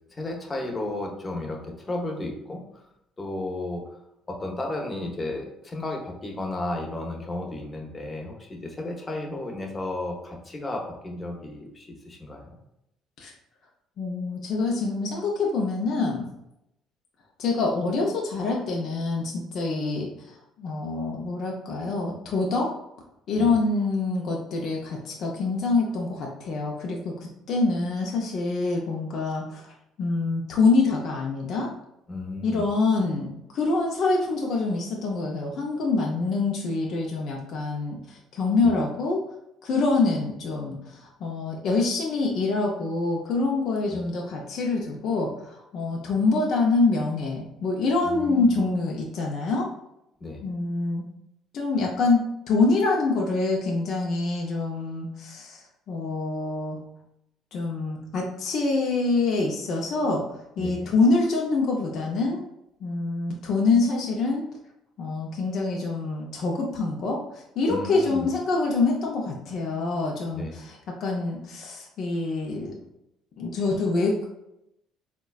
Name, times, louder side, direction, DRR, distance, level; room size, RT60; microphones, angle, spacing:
voice 1, 0.2-2.6 3.2-3.8 4.3-12.6 23.4-23.6 32.1-32.7 38.6-38.7 43.9-44.0 48.0-48.6 50.2-50.4 60.6-60.9 67.7-68.3 70.3-70.5, left 2 dB, 25° left, 1 dB, 0.7 m, -33 dB
voice 2, 14.0-16.3 17.4-20.1 20.6-22.7 23.3-29.7 30.0-31.7 32.4-39.2 39.6-49.7 50.4-51.0 51.5-56.8 57.5-60.2 60.6-62.4 62.8-64.5 65.0-72.8 73.4-74.3, left 3 dB, 60° left, -1 dB, 0.5 m, -25 dB
3.8 x 2.2 x 2.3 m, 0.82 s
supercardioid pair, 80°, 0 cm